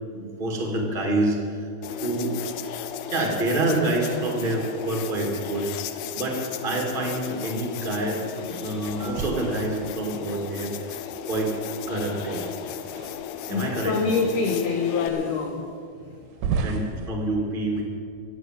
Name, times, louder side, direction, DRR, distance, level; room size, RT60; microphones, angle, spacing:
voice 1, 0.1-2.3 3.1-5.7 6.1-10.7 11.2-11.5 11.9-12.4 13.5-13.9 16.6-17.8, right 2 dB, 30° right, 1 dB, 0.9 m, -27 dB
sound 1, 1.8-15.1, left 9 dB, 85° left, 2.5 m, -35 dB
voice 2, 8.5-8.9 13.4-16.8, left 4 dB, 65° left, 2 dB, 2.1 m, -27 dB
sound 2, 8.9-10.3 12.1-13.6 14.3-14.4 15.1-15.2 16.3-17.1, right 5 dB, 85° right, 2.9 m, -33 dB
14.5 x 8.7 x 9.0 m, 2.3 s
omnidirectional pair, 4.7 m